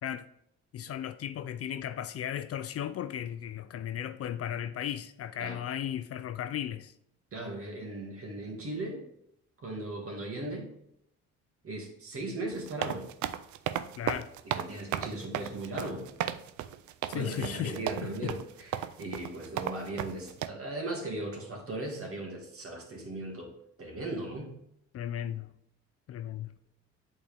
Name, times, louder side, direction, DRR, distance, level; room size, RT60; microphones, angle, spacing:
voice 1, 0.7-6.9 14.0-14.3 17.1-17.8 18.0-18.3 24.9-25.5 26.1-26.5, left 10 dB, 50° left, 0.4 m, -35 dB
voice 2, 7.3-9.0 9.6-10.7 11.6-13.1 14.5-16.1 17.1-23.5 23.8-24.6, right 2 dB, 50° right, 2.1 m, -38 dB
sound 1, 12.5-20.5, right 11 dB, 70° right, 0.5 m, -34 dB
8.3 x 4.3 x 3.4 m
cardioid pair, 90°, 30 cm